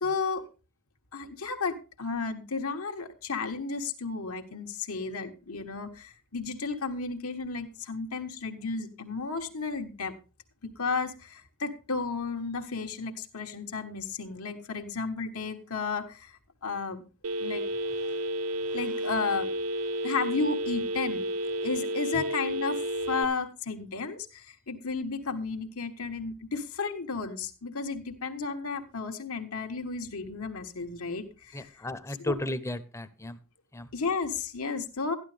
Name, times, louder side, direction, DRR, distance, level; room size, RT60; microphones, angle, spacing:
voice 1, 0.0-0.4 1.1-10.1 10.6-17.0 17.4-17.6 17.9-18.2 18.6-19.5 20.0-21.3 21.6-31.6 32.2-32.3 33.9-35.1, left 4 dB, 75° left, 4 dB, 1.4 m, -33 dB
Telephone, 17.2-23.3, right 1 dB, 70° right, 0.6 m, -31 dB
voice 2, 31.5-33.4 33.7-33.9, left 1 dB, 15° left, 11 dB, 0.9 m, -34 dB
12.5 x 11.5 x 3.4 m, 0.31 s
head